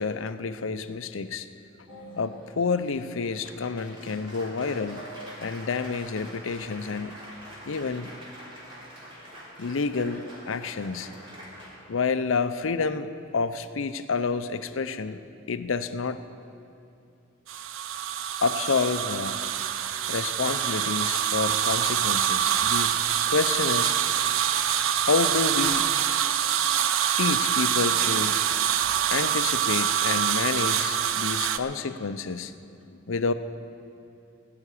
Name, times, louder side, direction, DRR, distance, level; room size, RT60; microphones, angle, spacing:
voice 1, 0.0-1.5 2.2-5.0 5.4-7.2 7.7-8.1 9.6-11.1 11.9-15.2 15.5-16.2 18.4-19.4 20.1-23.0 23.3-24.0 25.0-25.9 27.2-28.4 29.1-32.5 33.1-33.3, left 4 dB, 75° left, 11 dB, 0.6 m, -29 dB
Applause, 1.9-11.7, equal, 25° right, 3.1 m, -45 dB
sound 1, 17.5-31.6, right 9 dB, 80° right, 0.5 m, -25 dB
17.5 x 5.9 x 9.9 m, 2.6 s
head